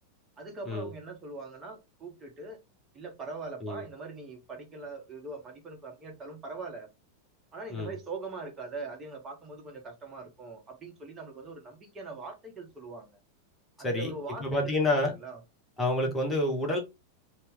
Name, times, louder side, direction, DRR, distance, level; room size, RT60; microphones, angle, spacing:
voice 1, 0.4-2.6 2.9-6.9 7.5-13.1 13.8-14.8 15.1-15.4 16.0-16.1, right 3 dB, 25° right, 0.9 m, -42 dB
voice 2, 13.8-14.1 14.4-15.1 15.8-16.8, left 1 dB, 15° left, 0.8 m, -28 dB
2.7 x 2.1 x 3.6 m
figure-of-eight pair, 90°, 0 cm